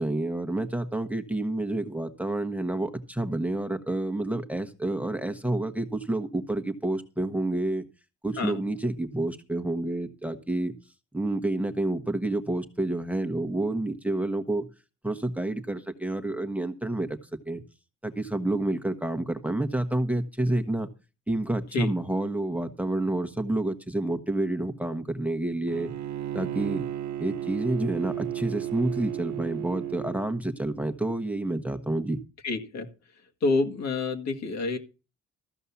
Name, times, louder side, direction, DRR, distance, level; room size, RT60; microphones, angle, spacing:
voice 1, 0.0-7.8 8.2-10.7 11.1-14.7 15.0-17.2 17.4-17.6 18.0-20.9 21.3-25.9 26.3-26.8 27.2-32.2, right 1 dB, 5° right, 6 dB, 1.1 m, -29 dB
Bowed string instrument, 25.7-30.2, right 12 dB, 65° right, 0.8 m, -33 dB
voice 2, 32.4-32.9 33.4-34.8, left 3 dB, 60° left, 4 dB, 2.0 m, -27 dB
14.0 x 5.4 x 7.1 m, 0.32 s
cardioid pair, 90°, 30 cm